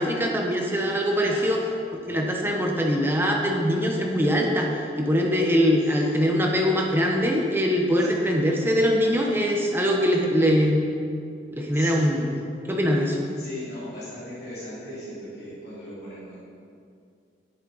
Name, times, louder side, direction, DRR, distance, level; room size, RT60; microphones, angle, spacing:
voice 1, 0.0-1.6 2.1-10.8 11.5-12.4 12.7-13.2, equal, 10° right, 0 dB, 0.9 m, -22 dB
voice 2, 1.1-1.6 8.0-8.2 11.7-12.2 13.4-16.3, left 1 dB, 60° left, -11 dB, 3.1 m, -38 dB
11.0 x 10.5 x 4.0 m, 2.4 s
head